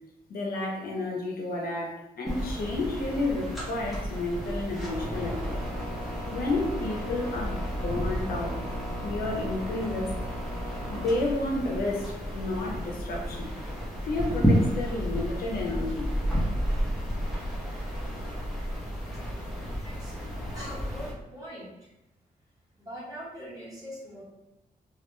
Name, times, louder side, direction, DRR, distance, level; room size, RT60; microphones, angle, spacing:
voice 1, 0.3-5.6 6.3-8.6 9.0-10.1 10.9-13.5 14.0-16.1, left 2 dB, 75° left, -1 dB, 0.7 m, -31 dB
sound 1, 2.3-21.1, equal, ahead, 0.6 m, -31 dB
voice 2, 19.8-20.1 20.5-21.9 22.8-24.2, equal, 25° right, -8 dB, 1.2 m, -42 dB
2.3 x 2.2 x 3.0 m, 0.91 s
wide cardioid pair, 135°, 15 cm